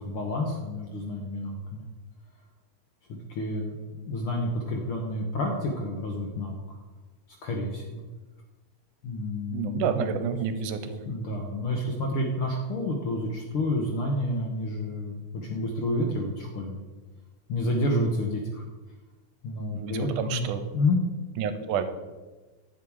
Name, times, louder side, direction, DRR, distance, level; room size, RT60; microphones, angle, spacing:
voice 1, 0.0-1.8 3.1-6.6 7.4-8.0 9.0-10.1 11.1-16.8 17.5-18.6 19.4-21.0, left 1 dB, 65° left, 1 dB, 1.4 m, -29 dB
voice 2, 9.5-11.0 19.7-20.6 21.4-21.8, right 7 dB, 90° right, 9 dB, 2.3 m, -29 dB
10.5 x 7.3 x 4.7 m, 1.3 s
omnidirectional pair, 3.6 m